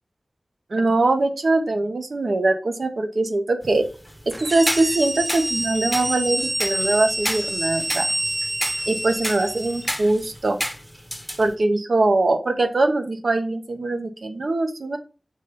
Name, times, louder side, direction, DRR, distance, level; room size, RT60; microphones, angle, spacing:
voice 1, 0.7-3.9 4.3-8.1 8.9-10.6 11.4-15.0, right 2 dB, 70° right, 6 dB, 1.2 m, -22 dB
sound 1, 3.6-11.5, equal, 5° right, 0.9 m, -32 dB
sound 2, 4.3-10.0, right 1 dB, 25° right, 0.8 m, -27 dB
6.4 x 4.0 x 5.0 m, 0.34 s
wide cardioid pair, 80°, 0 cm